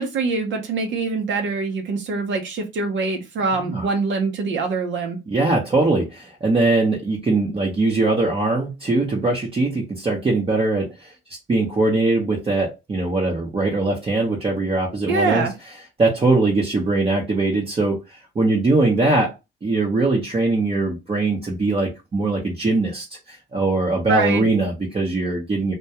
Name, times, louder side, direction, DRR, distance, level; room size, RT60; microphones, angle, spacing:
voice 1, 0.0-5.2 15.1-15.5 24.1-24.4, right 4 dB, 70° right, 0.7 m, -24 dB
voice 2, 3.5-3.9 5.3-11.1 11.5-15.5 16.0-18.0 18.3-19.3 19.6-25.7, right 2 dB, 30° right, 0.7 m, -21 dB
2.2 x 2.2 x 2.8 m
cardioid pair, 90°, 20 cm